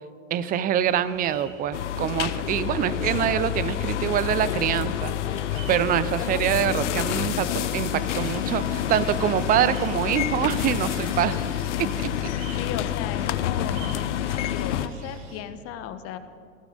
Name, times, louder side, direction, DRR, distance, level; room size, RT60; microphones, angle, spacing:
voice 1, 0.3-5.1 5.7-11.4, right 10 dB, 20° right, 15 dB, 0.5 m, -25 dB
sound 1, 0.8-15.4, right 4 dB, 45° right, 3.4 m, -47 dB
sound 2, 1.7-14.9, left 11 dB, 60° left, 0.9 m, -28 dB
voice 2, 12.5-14.0 14.4-16.2, left 10 dB, 35° left, 11 dB, 1.2 m, -36 dB
17.5 x 15.0 x 5.2 m, 2.3 s
figure-of-eight pair, 95°, 40 cm